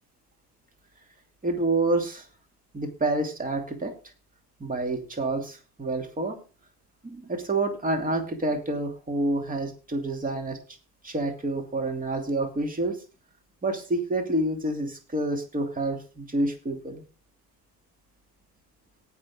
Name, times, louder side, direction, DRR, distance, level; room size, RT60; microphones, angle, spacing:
voice 1, 1.4-2.3 2.7-3.9 4.6-6.4 7.0-10.6 11.0-13.0 13.6-17.0, right 2 dB, 15° right, 4 dB, 2.7 m, -28 dB
18.0 x 6.4 x 3.7 m, 0.34 s
hypercardioid pair, 70°, 50 cm